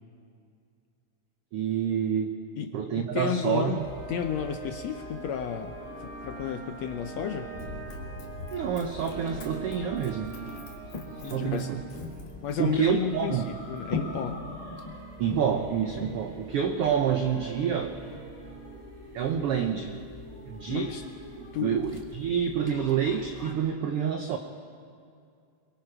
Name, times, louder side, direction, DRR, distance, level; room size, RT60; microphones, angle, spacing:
voice 1, 1.5-2.4 2.7-3.9 8.5-10.4 11.2-11.8 12.6-13.6 15.2-18.0 19.1-20.0 20.5-21.0 21.4-24.4, right 8 dB, 80° right, 5 dB, 1.3 m, -28 dB
voice 2, 2.6-3.8 4.1-7.5 11.2-11.7 12.4-14.4 20.7-21.0 21.5-21.8, left 8 dB, 75° left, 6 dB, 1.7 m, -32 dB
sound 1, 3.6-21.5, right 3 dB, 15° right, 6.5 m, -44 dB
sound 2, 3.8-23.5, left 3 dB, 25° left, 0.8 m, -44 dB
Run, 7.5-12.8 13.4-13.5, left 3 dB, 55° left, 2.9 m, -45 dB
23.0 x 23.0 x 4.9 m, 2.4 s
omnidirectional pair, 3.7 m